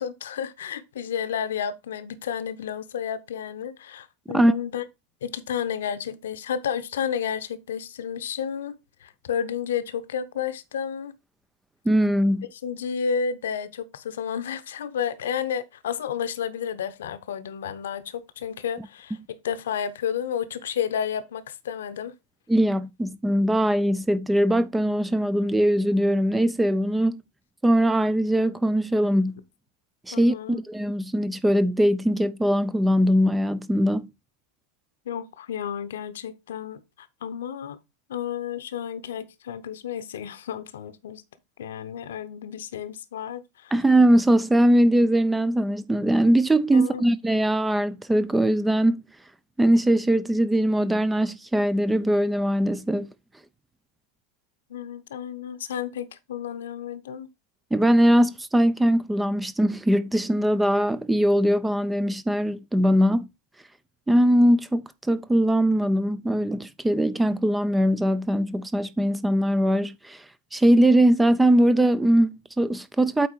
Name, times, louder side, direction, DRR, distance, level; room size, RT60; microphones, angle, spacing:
voice 1, 0.0-4.8 5.2-11.2 12.5-22.1 30.1-30.6 35.1-37.8 38.1-41.2 41.6-43.7 46.7-47.0 54.7-57.3, left 8 dB, 60° left, 0.8 m, -31 dB
voice 2, 11.9-12.5 22.5-27.2 27.6-29.4 30.1-34.1 43.7-49.0 49.6-53.1 57.7-63.3 64.1-70.2 70.5-73.3, right 1 dB, 5° right, 0.4 m, -21 dB
8.4 x 4.3 x 4.4 m
figure-of-eight pair, 90°, 0 cm